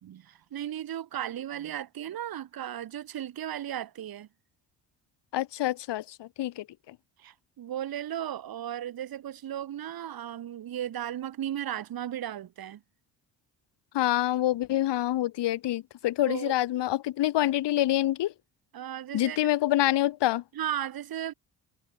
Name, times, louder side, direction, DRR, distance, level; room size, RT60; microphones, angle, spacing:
voice 1, 0.0-4.3 7.2-12.8 16.3-16.6 18.7-19.4 20.5-21.3, right 11 dB, 55° right, 1.8 m, -35 dB
voice 2, 5.3-6.9 13.9-18.3 19.1-20.4, left 14 dB, 70° left, 3.0 m, -26 dB
cardioid pair, 85°, 43 cm